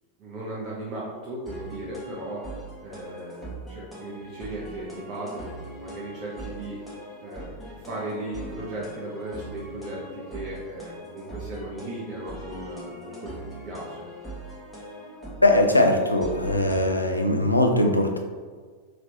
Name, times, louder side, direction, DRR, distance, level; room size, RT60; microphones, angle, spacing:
voice 1, 0.2-13.4 13.6-14.1, right 1 dB, 35° right, -6 dB, 0.6 m, -37 dB
sound 1, 1.5-17.2, right 1 dB, 5° left, 1.1 m, -41 dB
voice 2, 15.4-18.2, left 1 dB, 85° left, 3 dB, 0.4 m, -20 dB
3.0 x 2.9 x 2.7 m, 1.5 s
figure-of-eight pair, 90°, 0 cm